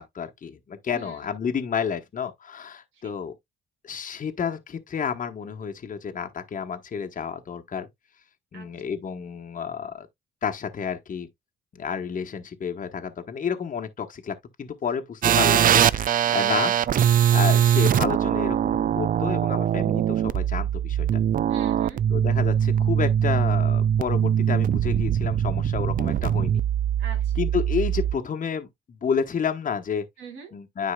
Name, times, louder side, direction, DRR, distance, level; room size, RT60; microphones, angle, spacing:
voice 1, 0.0-3.3 3.8-7.9 8.5-10.1 10.4-11.3 11.7-16.7 17.3-21.2 22.1-26.6 27.4-30.1 30.5-30.9, left 7 dB, 40° left, 1.1 m, -30 dB
voice 2, 0.9-1.2 2.9-3.1 8.5-8.7 21.5-22.1 27.0-27.4 30.2-30.5, right 6 dB, 80° right, 2.8 m, -43 dB
sound 1, 15.2-28.2, right 9 dB, 45° right, 0.4 m, -22 dB
9.8 x 4.6 x 2.2 m
cardioid pair, 90°, 20 cm